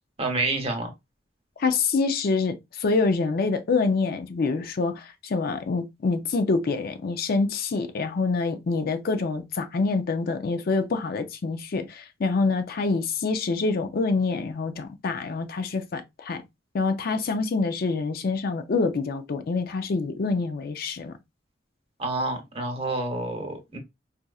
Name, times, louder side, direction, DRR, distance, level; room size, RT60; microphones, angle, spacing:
voice 1, 0.2-0.9 22.0-23.8, right 2 dB, 30° right, 0.9 m, -28 dB
voice 2, 1.6-16.4 16.7-21.1, left 4 dB, 55° left, 0.4 m, -26 dB
4.1 x 2.4 x 2.3 m
head